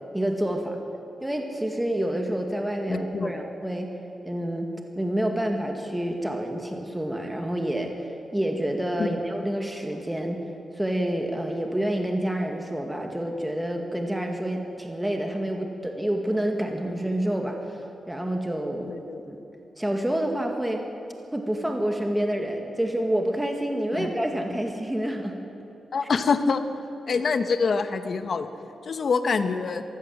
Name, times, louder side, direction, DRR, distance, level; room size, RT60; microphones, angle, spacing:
voice 1, 0.1-0.8 1.2-3.9 4.3-4.7 5.0-7.9 8.3-10.4 10.7-17.8 18.1-19.0 19.3-19.4 19.8-20.8 21.3-25.4 26.0-26.1 27.1-27.2, right 1 dB, 10° right, 2 dB, 2.1 m, -28 dB
voice 2, 2.9-3.3 9.0-9.1 18.9-19.2 23.9-24.1 25.9-26.6 27.1-28.5 28.8-29.8, left 5 dB, 60° left, 9 dB, 1.2 m, -25 dB
22.5 x 15.0 x 7.8 m, 3.0 s
cardioid pair, 90°, 0 cm